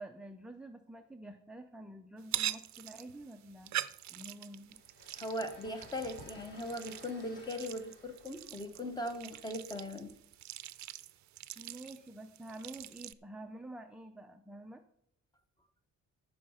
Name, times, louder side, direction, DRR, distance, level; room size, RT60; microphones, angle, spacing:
voice 1, 0.0-3.7 4.1-4.8 11.6-14.8, right 1 dB, 5° right, 5 dB, 0.4 m, -48 dB
sound 1, 2.2-13.1, right 13 dB, 65° right, 0.5 m, -43 dB
sound 2, 4.7-10.2, left 1 dB, 35° left, 4.1 m, -56 dB
voice 2, 5.2-10.1, left 1 dB, 15° left, 7 dB, 1.0 m, -39 dB
14.0 x 5.7 x 5.5 m, 0.71 s
wide cardioid pair, 175°, 30 cm